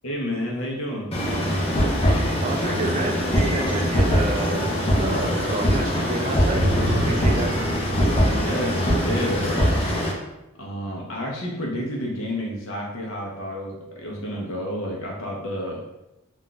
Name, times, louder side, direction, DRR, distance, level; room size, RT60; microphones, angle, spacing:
voice 1, 0.0-1.1 8.1-9.9 10.6-15.8, equal, 70° left, -1 dB, 0.7 m, -30 dB
sound 1, 1.1-10.1, equal, 25° left, 0.6 m, -22 dB
voice 2, 2.4-6.7 7.0-7.6, right 2 dB, 30° right, 2 dB, 0.3 m, -29 dB
sound 2, 4.9-5.8 6.2-9.6, equal, 65° right, 0.8 m, -29 dB
2.5 x 2.3 x 3.8 m, 0.93 s
head